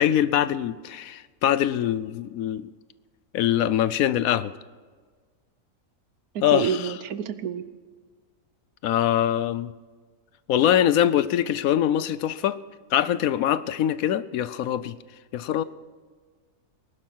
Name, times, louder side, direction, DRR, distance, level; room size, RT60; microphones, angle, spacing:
voice 1, 0.0-2.6 3.3-4.5 6.4-6.9 8.8-9.7 10.5-12.6 12.9-14.9 15.3-15.6, left 11 dB, 70° left, 16 dB, 1.0 m, -23 dB
voice 2, 6.5-7.6, right 8 dB, 80° right, 13 dB, 1.3 m, -28 dB
20.0 x 12.0 x 4.5 m, 1.5 s
omnidirectional pair, 1.6 m